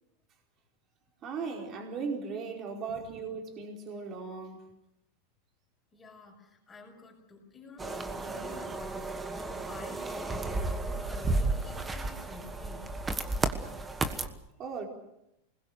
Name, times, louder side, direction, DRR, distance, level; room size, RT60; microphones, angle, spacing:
voice 1, 1.2-4.6 14.6-14.9, right 5 dB, 25° right, 1 dB, 4.5 m, -37 dB
voice 2, 5.9-12.9, left 3 dB, 15° left, 0 dB, 5.8 m, -49 dB
sound 1, 7.8-14.3, right 2 dB, 10° right, 1.4 m, -33 dB
28.0 x 21.0 x 6.5 m, 0.83 s
supercardioid pair, 165°, 0 cm